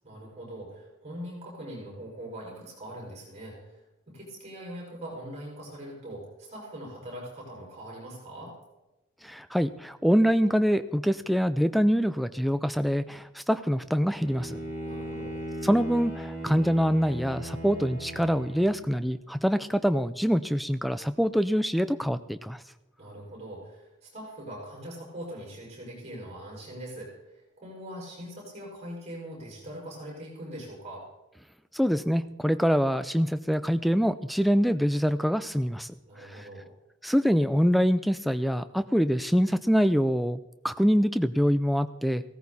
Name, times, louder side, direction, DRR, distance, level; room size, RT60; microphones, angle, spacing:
voice 1, 0.0-8.5 14.8-15.4 23.0-31.0 36.1-36.7, right 1 dB, 30° right, -3 dB, 5.8 m, -42 dB
voice 2, 9.2-14.6 15.6-22.6 31.7-36.4 37.0-40.4 40.6-42.3, equal, ahead, 11 dB, 0.4 m, -25 dB
Bowed string instrument, 14.2-19.0, right 1 dB, 35° left, 5.1 m, -37 dB
16.0 x 14.0 x 4.2 m, 0.99 s
head